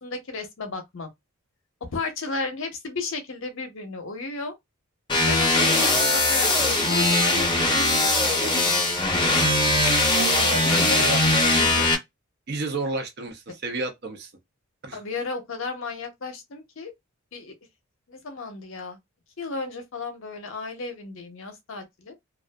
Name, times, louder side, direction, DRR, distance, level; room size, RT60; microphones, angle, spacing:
voice 1, 0.0-1.1 1.9-4.5 5.2-8.9 10.6-11.1 14.9-16.9 17.3-17.5 18.1-19.0 19.4-22.1, left 3 dB, 65° left, 0.7 m, -34 dB
sound 1, 5.1-11.9, left 2 dB, 20° left, 0.7 m, -21 dB
voice 2, 10.1-11.2 11.5-11.9 12.5-14.3 14.8-15.0, right 3 dB, 50° right, 0.6 m, -31 dB
2.4 x 2.4 x 2.2 m
head